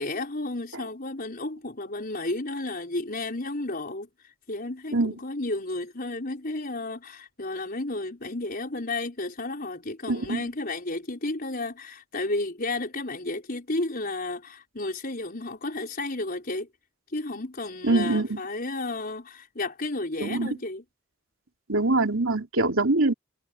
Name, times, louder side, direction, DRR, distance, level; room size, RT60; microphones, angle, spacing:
voice 1, 0.0-16.7 17.1-20.8, left 2 dB, 45° left, 4.9 m, -32 dB
voice 2, 10.1-10.4 17.8-18.4 20.2-20.6 21.7-23.1, right 2 dB, 70° right, 3.1 m, -24 dB
head